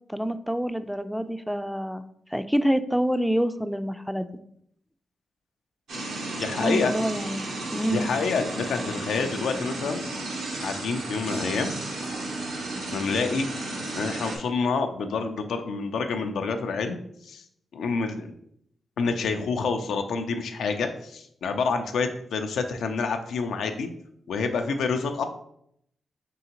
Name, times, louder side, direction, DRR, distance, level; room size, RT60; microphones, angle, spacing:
voice 1, 0.1-2.0 2.3-4.3 6.6-7.4 7.7-8.1, equal, ahead, 11 dB, 0.3 m, -26 dB
sound 1, 5.9-14.4, right 2 dB, 85° right, 0.8 m, -33 dB
voice 2, 6.4-6.9 7.9-10.0 10.6-11.7 12.9-13.5 13.9-17.0 17.2-17.4 17.7-18.3 19.0-23.9 24.3-25.3, left 4 dB, 80° left, 6 dB, 0.4 m, -27 dB
3.8 x 3.5 x 2.9 m, 0.73 s
supercardioid pair, 50°, 0 cm